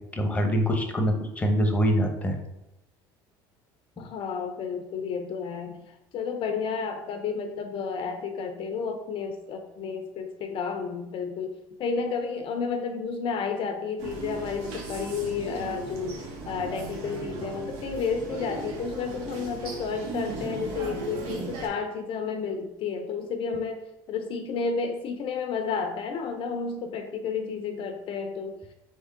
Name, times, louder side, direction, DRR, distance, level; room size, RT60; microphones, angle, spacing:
voice 1, 0.1-2.4, equal, 15° left, 4 dB, 0.9 m, -24 dB
voice 2, 4.0-28.6, left 5 dB, 50° left, 7 dB, 0.5 m, -31 dB
sound 1, 14.0-21.7, right 3 dB, 70° right, 1.2 m, -37 dB
4.1 x 3.5 x 3.6 m, 0.91 s
supercardioid pair, 90°, 11 cm